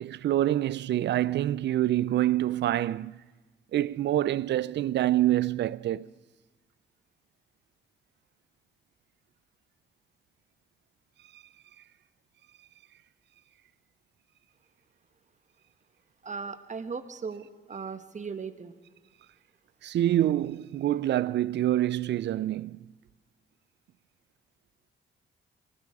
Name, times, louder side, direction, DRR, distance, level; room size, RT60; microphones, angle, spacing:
voice 1, 0.0-3.1 3.7-6.1 19.8-22.9, right 13 dB, 65° right, 0.4 m, -26 dB
voice 2, 16.2-18.8, right 5 dB, 40° right, 1.2 m, -38 dB
19.0 x 15.5 x 4.8 m
supercardioid pair, 60°, 20 cm